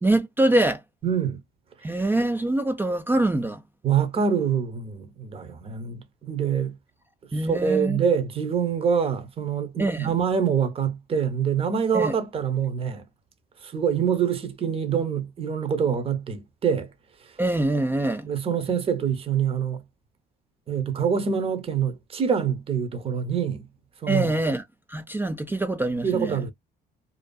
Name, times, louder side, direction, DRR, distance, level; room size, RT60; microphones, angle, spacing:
voice 1, 0.0-0.8 1.8-3.6 7.3-8.0 9.8-10.1 11.9-12.1 17.4-18.3 24.1-24.6 24.9-26.4, right 2 dB, 10° right, 0.3 m, -24 dB
voice 2, 1.0-1.4 3.8-6.7 7.3-13.0 13.6-16.9 17.2-17.3 18.2-19.8 20.7-23.6 24.0-24.3 26.0-26.5, right 7 dB, 35° right, 0.7 m, -25 dB
2.6 x 2.3 x 2.2 m
cardioid pair, 110°, 17 cm